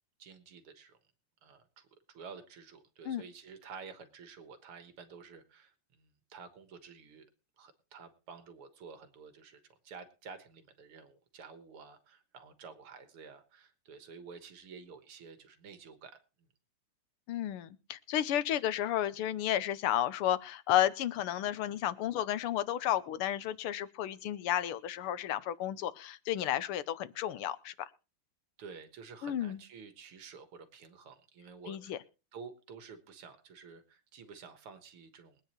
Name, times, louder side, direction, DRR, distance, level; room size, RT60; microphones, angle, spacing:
voice 1, 0.2-1.0 1.4-7.3 7.6-16.2 28.6-32.0 32.3-35.4, right 5 dB, 80° right, 8 dB, 2.3 m, -51 dB
voice 2, 17.3-27.7 29.2-29.6 31.7-32.0, left 12 dB, 85° left, 15 dB, 1.7 m, -32 dB
22.5 x 9.4 x 3.0 m, 0.32 s
omnidirectional pair, 2.4 m